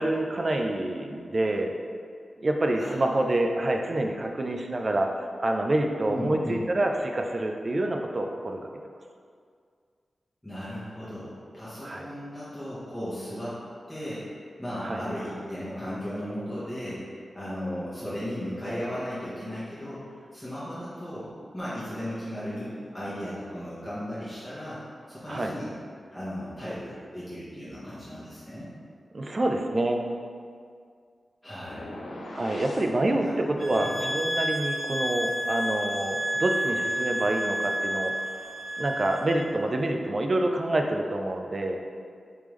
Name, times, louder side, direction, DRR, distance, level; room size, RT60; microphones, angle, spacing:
voice 1, 0.0-1.7 2.4-8.6 11.8-12.1 14.8-15.0 25.3-25.5 29.1-30.0 32.4-38.1 38.8-41.8, right 1 dB, 45° right, 3 dB, 0.4 m, -27 dB
voice 2, 2.8-3.2 6.1-6.6 10.4-13.6 13.9-21.3 21.5-24.8 25.1-25.7 26.1-28.7 31.4-31.9 33.1-33.3 33.8-33.9, equal, 10° left, -11 dB, 1.1 m, -36 dB
sound 1, 31.7-32.9, left 1 dB, 85° left, 0.4 m, -39 dB
sound 2, 33.6-39.4, equal, 10° right, 1.2 m, -30 dB
3.5 x 3.3 x 3.1 m, 2.1 s
wide cardioid pair, 75°, 0 cm